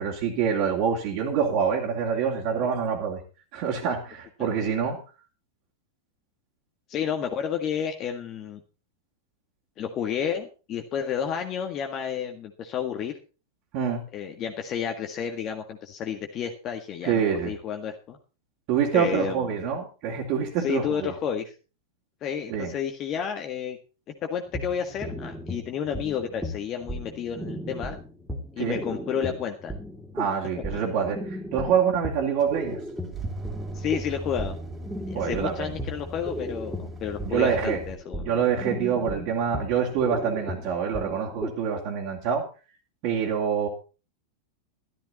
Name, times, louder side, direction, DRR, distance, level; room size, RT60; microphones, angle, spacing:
voice 1, 0.0-3.2 3.5-5.0 13.7-14.0 17.0-17.5 18.7-21.1 22.5-22.7 28.6-28.8 30.1-32.8 35.1-35.7 37.2-37.8 38.2-42.4 43.0-43.7, right 7 dB, 45° right, -2 dB, 3.0 m, -26 dB
voice 2, 6.9-8.6 9.8-13.1 14.1-18.2 18.9-19.5 20.6-21.5 22.2-23.8 24.2-28.0 28.6-29.7 33.7-34.6 35.1-38.3, left 8 dB, 35° left, 4 dB, 1.8 m, -31 dB
sound 1, 24.5-41.6, equal, ahead, 2.8 m, -36 dB
sound 2, 32.4-37.9, right 1 dB, 20° right, 3.0 m, -38 dB
13.5 x 13.5 x 4.2 m, 0.34 s
figure-of-eight pair, 90°, 0 cm